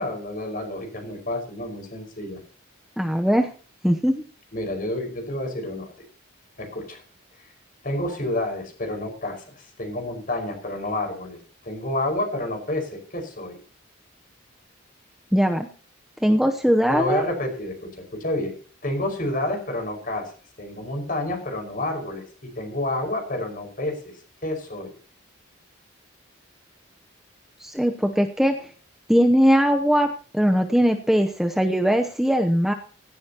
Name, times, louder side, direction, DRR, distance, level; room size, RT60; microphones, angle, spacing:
voice 1, 0.0-2.4 4.5-5.9 6.6-7.0 7.8-13.6 16.9-18.5 18.8-20.3 20.6-24.1 24.4-24.9, left 1 dB, 40° left, 4 dB, 5.5 m, -29 dB
voice 2, 3.0-3.5 3.8-4.2 15.3-15.7 16.2-17.2 27.6-28.6 29.1-32.7, equal, ahead, 4 dB, 0.8 m, -20 dB
16.5 x 16.5 x 2.9 m, 0.41 s
head